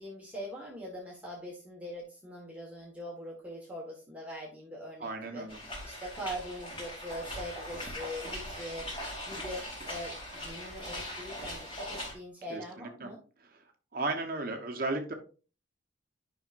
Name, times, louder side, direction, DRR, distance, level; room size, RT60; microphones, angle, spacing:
voice 1, 0.0-13.2, equal, 5° right, -3 dB, 1.5 m, -42 dB
voice 2, 5.0-5.6 12.5-13.1 13.9-15.1, right 2 dB, 50° right, 3 dB, 1.0 m, -35 dB
sound 1, 5.5-12.1, left 1 dB, 25° left, 2.8 m, -40 dB
10.0 x 5.7 x 2.5 m, 0.36 s
head